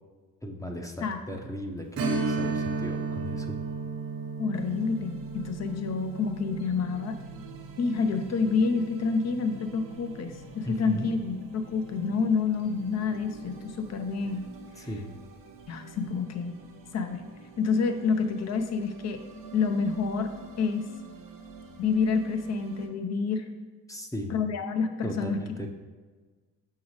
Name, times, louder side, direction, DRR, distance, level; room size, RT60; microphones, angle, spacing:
voice 1, 0.4-3.6 10.7-11.1 14.8-15.1 23.9-24.4 25.0-25.7, equal, 10° left, 3 dB, 0.7 m, -36 dB
Strum, 1.9-11.1 11.5-11.6 14.1-14.3 14.7-14.8, right 4 dB, 85° right, 1.1 m, -35 dB
voice 2, 4.4-7.2 7.8-14.5 14.8-14.9 15.7-16.6 16.9-17.2 17.6-19.2 19.5-20.3 20.6-20.9 21.8-23.5 24.3-25.7, left 5 dB, 50° left, 7 dB, 0.7 m, -28 dB
sound 1, 4.5-22.9, right 4 dB, 70° right, 0.9 m, -48 dB
6.1 x 5.6 x 3.2 m, 1.4 s
cardioid pair, 75°, 35 cm